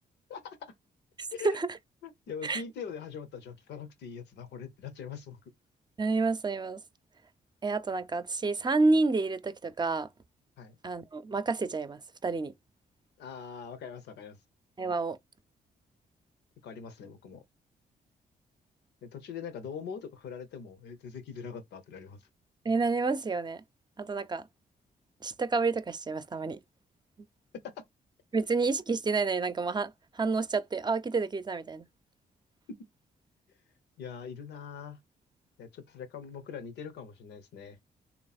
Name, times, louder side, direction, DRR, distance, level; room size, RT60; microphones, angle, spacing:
voice 1, 0.3-0.7 1.3-1.6 2.0-5.4 10.6-10.8 13.2-14.4 16.6-17.4 19.0-22.2 27.6-27.7 32.8-32.9 34.0-35.0 35.6-37.8, left 6 dB, 85° left, 0.9 m, -42 dB
voice 2, 1.2-1.7 2.4-2.6 6.0-6.8 7.6-10.1 10.8-12.5 14.8-15.2 22.6-23.6 24.0-24.5 25.2-26.6 28.3-31.9, right 3 dB, 25° right, 0.6 m, -29 dB
3.4 x 3.0 x 4.1 m
supercardioid pair, 60°, 17 cm